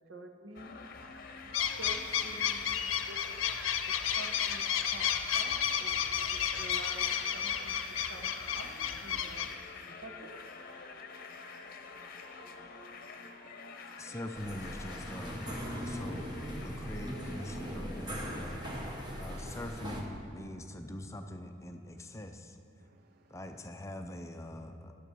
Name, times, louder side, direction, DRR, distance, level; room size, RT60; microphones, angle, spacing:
voice 1, 0.1-0.8 1.3-3.4 3.9-5.5 5.8-6.0 6.3-9.5 9.9-10.4 13.2-13.3, right 1 dB, 70° right, 3 dB, 1.2 m, -49 dB
sound 1, 0.6-19.7, left 4 dB, 50° left, 0.8 m, -48 dB
sound 2, 1.5-9.5, left 8 dB, 85° left, 0.6 m, -32 dB
voice 2, 10.9-14.2 22.8-23.4, right 5 dB, 50° right, 8 dB, 0.4 m, -66 dB
voice 3, 13.9-18.6 19.2-22.6 23.3-24.9, left 1 dB, 15° left, 6 dB, 0.5 m, -43 dB
sound 3, 14.3-20.0, equal, 25° right, 1.3 m, -40 dB
11.0 x 7.7 x 6.8 m, 2.4 s
head